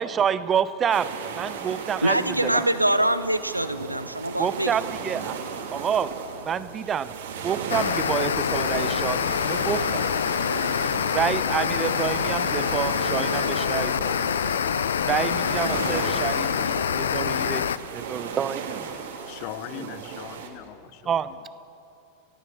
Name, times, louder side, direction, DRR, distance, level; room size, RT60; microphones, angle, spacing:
voice 1, 0.0-2.7 4.4-5.4 5.7-10.1 11.1-14.1 15.0-18.9 19.7-19.9 21.0-21.4, right 8 dB, 25° right, 15 dB, 0.9 m, -28 dB
sound 1, 0.9-20.5, right 6 dB, 60° right, 2.9 m, -36 dB
voice 2, 2.0-4.7, right 1 dB, 85° right, 13 dB, 0.9 m, -24 dB
sound 2, 7.7-17.8, left 8 dB, 65° left, 0.7 m, -26 dB
voice 3, 19.3-21.4, left 13 dB, 45° left, 15 dB, 1.0 m, -40 dB
28.5 x 17.5 x 7.1 m, 2.7 s
figure-of-eight pair, 90°, 0 cm